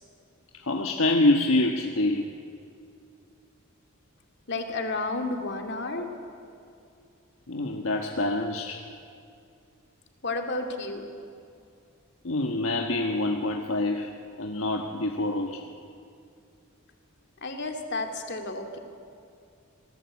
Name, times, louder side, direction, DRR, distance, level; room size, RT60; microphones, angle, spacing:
voice 1, 0.6-2.3 7.5-8.8 12.2-15.6, left 2 dB, 75° left, 2 dB, 1.4 m, -26 dB
voice 2, 4.5-6.1 10.2-11.1 17.4-18.8, left 2 dB, 55° left, 4 dB, 2.6 m, -31 dB
27.0 x 19.5 x 8.3 m, 2.4 s
head